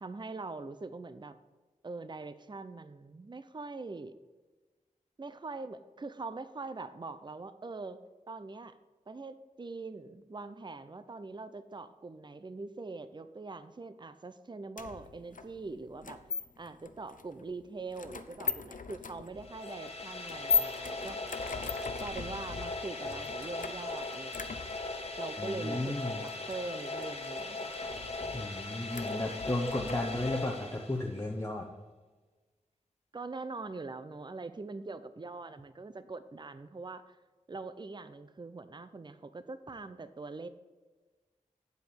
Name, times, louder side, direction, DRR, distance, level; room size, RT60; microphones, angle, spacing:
voice 1, 0.0-1.3 1.8-4.1 5.2-8.0 8.3-8.7 9.1-16.2 16.6-21.3 22.0-24.7 25.2-26.0 26.2-28.5 33.1-37.2 37.5-40.5, right 3 dB, 35° right, 12 dB, 0.5 m, -43 dB
sound 1, 14.8-30.5, left 5 dB, 70° left, 0.6 m, -39 dB
sound 2, 19.4-31.3, left 2 dB, 45° left, 1.3 m, -39 dB
voice 2, 25.4-26.3 28.3-31.7, left 1 dB, 20° left, -1 dB, 0.9 m, -34 dB
8.1 x 4.9 x 7.0 m, 1.3 s
wide cardioid pair, 55°, 14 cm